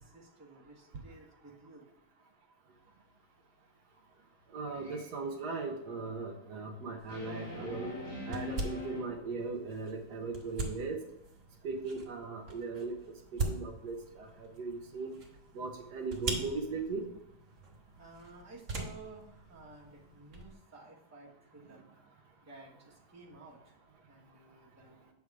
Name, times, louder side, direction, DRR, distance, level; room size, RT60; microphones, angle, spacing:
voice 1, 0.0-1.9 18.0-21.9 22.1-23.7 24.1-25.0, right 3 dB, 10° right, -4 dB, 1.2 m, -54 dB
voice 2, 4.5-7.9 8.3-11.0 11.6-13.0 13.3-15.1 15.5-17.0, right 4 dB, 75° right, 3 dB, 1.4 m, -38 dB
sound 1, 4.6-5.0 7.1-9.0, left 3 dB, 85° left, 3.0 m, -41 dB
sound 2, 7.0-20.5, right 3 dB, 50° right, 1.6 m, -43 dB
7.5 x 3.5 x 4.7 m, 0.89 s
omnidirectional pair, 1.8 m